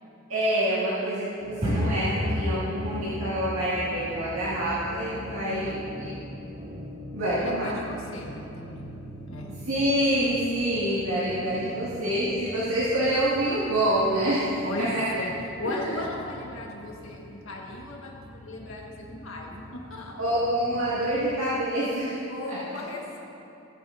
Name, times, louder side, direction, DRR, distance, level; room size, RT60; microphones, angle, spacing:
voice 1, 0.3-6.1 7.1-7.7 9.5-15.1 15.6-16.0 20.2-22.2 22.5-22.6, right 1 dB, 75° right, -9 dB, 2.2 m, -27 dB
sound 1, 1.4-21.3, equal, 40° right, 2.6 m, -37 dB
voice 2, 5.5-5.8 7.4-8.9 9.2-9.5 11.6-11.8 14.6-15.3 15.6-20.1 22.3-23.2, left 2 dB, 70° left, -2 dB, 1.6 m, -37 dB
19.5 x 8.7 x 2.7 m, 2.8 s
head